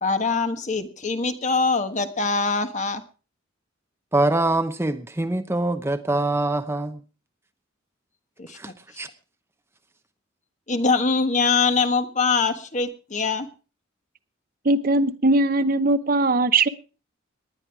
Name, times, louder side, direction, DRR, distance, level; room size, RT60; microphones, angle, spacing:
voice 1, 0.0-3.0 8.4-8.6 10.7-13.5, left 4 dB, 35° left, 1.4 m, -23 dB
voice 2, 4.1-7.0 8.5-9.1, right 2 dB, 15° right, 0.8 m, -24 dB
voice 3, 14.6-16.7, right 2 dB, 45° right, 0.9 m, -20 dB
19.0 x 11.0 x 4.8 m
head